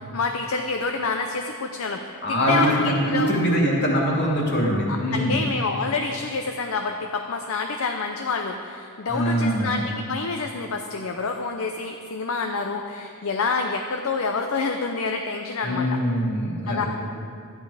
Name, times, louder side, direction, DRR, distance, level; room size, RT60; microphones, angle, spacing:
voice 1, 0.0-3.3 4.9-16.0 16.7-16.8, left 4 dB, 65° left, 4 dB, 0.6 m, -28 dB
voice 2, 2.2-5.4 9.1-9.8 15.6-16.9, equal, 50° left, -3 dB, 2.5 m, -23 dB
12.5 x 9.5 x 4.9 m, 2.3 s
head